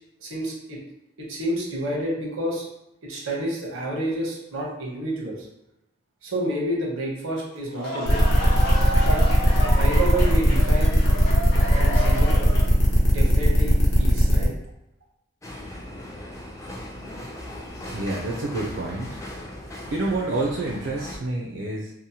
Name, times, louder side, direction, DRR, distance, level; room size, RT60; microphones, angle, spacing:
voice 1, 0.2-0.8 1.2-2.7 3.0-5.5 6.2-8.2 9.1-9.2 9.7-10.9 11.7-12.3 13.1-14.5, right 1 dB, 90° right, -3 dB, 0.8 m, -29 dB
sound 1, 7.6-12.9, equal, 50° left, 0.7 m, -31 dB
sound 2, 8.1-14.5, equal, 80° left, 0.8 m, -20 dB
sound 3, 15.4-21.2, left 1 dB, 15° left, 0.3 m, -38 dB
voice 2, 17.9-19.3 19.9-21.9, right 2 dB, 70° right, -3 dB, 0.4 m, -28 dB
2.8 x 2.1 x 2.7 m, 0.87 s
head